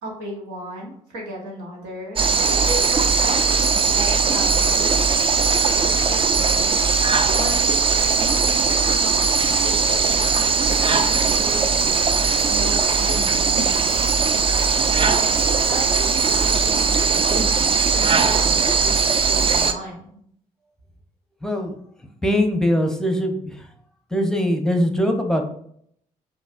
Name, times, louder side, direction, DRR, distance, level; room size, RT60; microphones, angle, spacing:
voice 1, 0.0-5.0 5.4-12.0 12.5-14.1 14.6-15.4 15.7-20.2, right 1 dB, 90° right, -1 dB, 1.2 m, -36 dB
sound 1, 2.2-19.7, right 5 dB, 35° right, 0.5 m, -19 dB
voice 2, 21.4-21.8 22.2-23.7 24.1-25.4, equal, 5° left, 4 dB, 0.8 m, -21 dB
5.2 x 3.2 x 2.5 m, 0.67 s
supercardioid pair, 60°, 15 cm